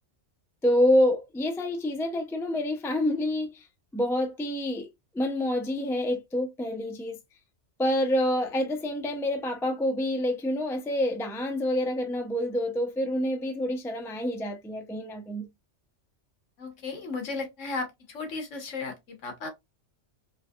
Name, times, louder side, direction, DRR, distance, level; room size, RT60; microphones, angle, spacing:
voice 1, 0.6-3.7 3.9-7.2 7.8-15.5, left 1 dB, 5° left, 0.3 m, -27 dB
voice 2, 16.6-19.5, left 3 dB, 85° left, 1.4 m, -35 dB
3.9 x 2.6 x 2.3 m
omnidirectional pair, 1.2 m